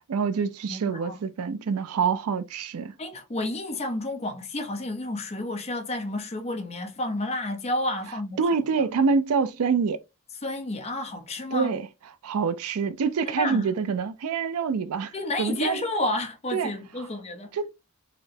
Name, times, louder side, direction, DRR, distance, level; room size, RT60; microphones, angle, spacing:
voice 1, 0.1-2.9 8.4-10.0 11.5-11.9 12.2-15.8 16.5-16.7 17.5-17.7, right 5 dB, 80° right, 0.4 m, -26 dB
voice 2, 0.7-1.2 3.0-8.4 10.4-11.7 13.3-13.7 15.1-17.5, left 1 dB, 30° left, 0.6 m, -30 dB
4.1 x 2.1 x 2.6 m
head